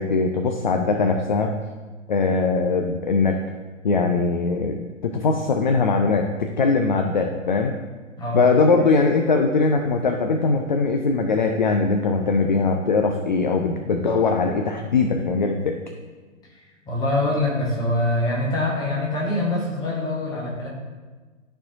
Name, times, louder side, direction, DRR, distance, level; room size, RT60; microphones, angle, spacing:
voice 1, 0.0-1.6 2.1-3.4 3.8-4.8 5.0-7.8 8.3-15.8, left 4 dB, 40° left, 4 dB, 0.4 m, -21 dB
voice 2, 16.5-20.7, left 1 dB, 10° left, -4 dB, 1.1 m, -24 dB
13.0 x 4.4 x 2.5 m, 1.3 s
figure-of-eight pair, 125°, 39 cm